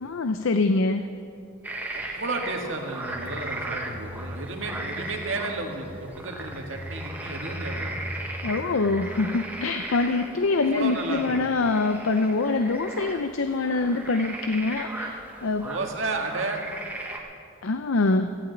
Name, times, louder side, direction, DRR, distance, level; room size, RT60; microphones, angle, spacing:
voice 1, 0.0-1.1 8.4-15.7 17.6-18.3, left 3 dB, 85° left, 8 dB, 0.6 m, -24 dB
sound 1, 1.6-17.2, right 2 dB, 10° right, 1.3 m, -37 dB
voice 2, 1.9-8.0 10.7-11.5 15.6-16.6, right 2 dB, 75° right, 2 dB, 1.8 m, -32 dB
sound 2, 3.1-9.7, equal, 35° left, 3.0 m, -40 dB
17.5 x 15.0 x 4.0 m, 2.4 s
head